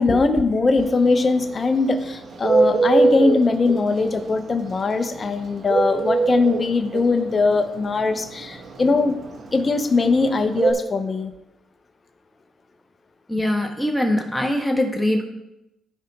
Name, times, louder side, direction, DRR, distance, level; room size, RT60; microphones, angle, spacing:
voice 1, 0.0-9.1 9.5-11.3, left 3 dB, 35° left, 7 dB, 0.8 m, -21 dB
Bird, 0.8-10.7, right 3 dB, 55° right, 1.4 m, -21 dB
voice 2, 13.3-15.2, left 1 dB, 5° left, 1 dB, 1.6 m, -22 dB
14.5 x 4.9 x 3.0 m, 0.89 s
cardioid pair, 90°, 0 cm